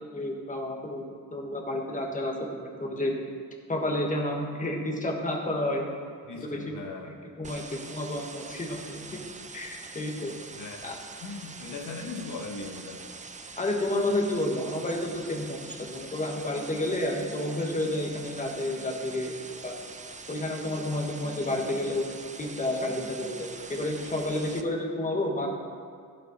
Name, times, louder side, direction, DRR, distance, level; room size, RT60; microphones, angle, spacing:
voice 1, 0.1-1.0 1.3-3.1 3.7-5.9 6.4-6.6 7.0-9.2 9.5-10.3 10.8-10.9 13.6-19.3 19.6-19.7 20.3-22.1 22.4-25.5, left 1 dB, 25° left, 0 dB, 1.5 m, -30 dB
voice 2, 6.2-7.2 10.5-10.8 11.2-13.1, left 3 dB, 60° left, 3 dB, 1.3 m, -39 dB
sound 1, 7.4-24.6, right 4 dB, 20° right, 0.6 m, -44 dB
15.5 x 5.7 x 4.2 m, 2.2 s
cardioid pair, 115°, 34 cm